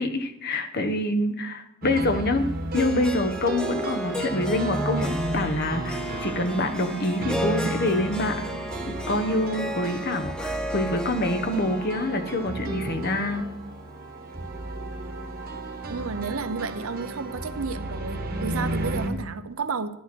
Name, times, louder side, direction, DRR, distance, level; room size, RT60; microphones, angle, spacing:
voice 1, 0.0-2.5 2.7-8.4 8.9-13.5, left 1 dB, 50° left, 1.1 m, -26 dB
sound 1, 1.8-19.1, right 1 dB, 45° right, 1.2 m, -33 dB
Harp, 2.7-14.9, equal, 5° left, 0.8 m, -35 dB
voice 2, 15.9-19.9, right 4 dB, 80° right, 0.7 m, -32 dB
11.0 x 10.0 x 4.5 m
head